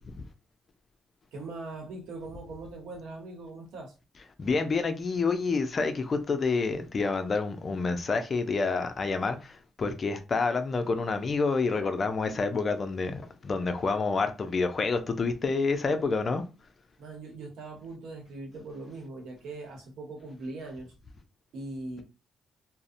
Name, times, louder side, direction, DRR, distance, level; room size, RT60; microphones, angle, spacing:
voice 1, 1.3-3.9 17.0-20.9 21.5-22.0, right 2 dB, 80° right, 0.9 m, -41 dB
voice 2, 4.4-16.5, left 4 dB, 40° left, 0.4 m, -28 dB
2.6 x 2.0 x 2.5 m
cardioid pair, 90°, 0 cm